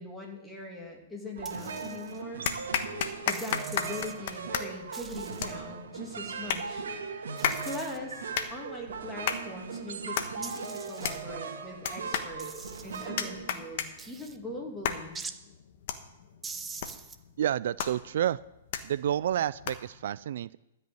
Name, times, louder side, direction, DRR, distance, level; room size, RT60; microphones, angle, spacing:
voice 1, 0.0-2.4 3.3-6.9 7.6-15.2, left 2 dB, 5° left, -1 dB, 2.6 m, -41 dB
sound 1, 1.4-1.9 2.5-20.0, left 8 dB, 50° left, 1.3 m, -36 dB
sound 2, 1.4-14.1, right 5 dB, 85° right, 1.8 m, -39 dB
sound 3, 1.5-2.2 3.3-4.2 4.9-5.6 7.4-8.0 10.4-11.2 12.4-13.1 14.0-14.4 15.2-15.4 16.4-17.2, right 5 dB, 10° right, 0.7 m, -44 dB
voice 2, 17.4-18.4 18.8-20.6, right 10 dB, 65° right, 19 dB, 0.3 m, -29 dB
13.0 x 5.5 x 9.2 m, 0.93 s
hypercardioid pair, 145°, 0 cm